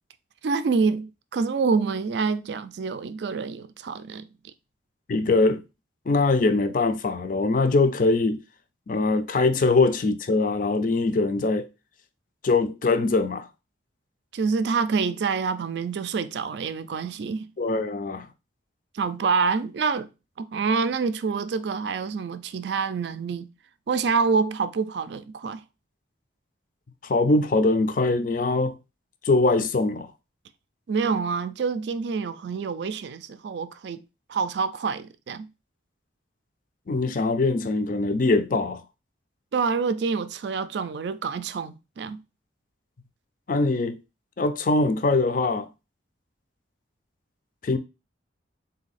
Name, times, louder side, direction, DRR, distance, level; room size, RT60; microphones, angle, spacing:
voice 1, 0.4-4.3 14.3-17.5 18.9-20.1 20.4-23.5 23.9-25.6 30.9-34.0 34.3-35.5 39.5-42.2, right 5 dB, 65° right, 0.4 m, -27 dB
voice 2, 5.1-5.6 6.1-8.4 8.9-11.7 12.4-13.5 17.6-18.3 27.0-28.8 29.2-30.1 36.9-38.8 43.5-44.0 44.4-45.7 47.6-47.8, left 3 dB, 45° left, 0.4 m, -22 dB
4.0 x 2.7 x 4.0 m
head